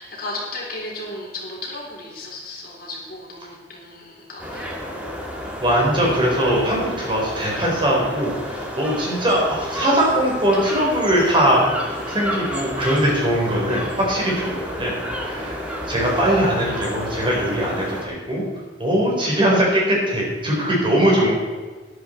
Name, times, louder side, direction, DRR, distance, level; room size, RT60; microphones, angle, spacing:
voice 1, 0.0-4.8, left 2 dB, 55° left, -2 dB, 3.8 m, -34 dB
sound 1, 4.4-18.0, equal, 10° right, 2.6 m, -31 dB
voice 2, 5.6-14.9 15.2-18.4 18.8-21.4, equal, 30° right, -3 dB, 4.3 m, -21 dB
13.5 x 11.5 x 4.5 m, 1.4 s
head